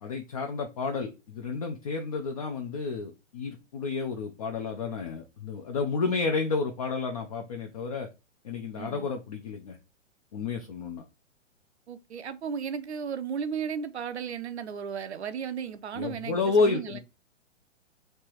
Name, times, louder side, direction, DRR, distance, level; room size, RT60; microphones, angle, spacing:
voice 1, 0.0-8.1 8.4-9.8 10.3-11.0 15.9-17.0, left 4 dB, 30° left, 0.5 m, -30 dB
voice 2, 8.7-9.1 11.9-17.0, right 7 dB, 60° right, 0.6 m, -35 dB
3.3 x 2.9 x 4.3 m
figure-of-eight pair, 120°, 38 cm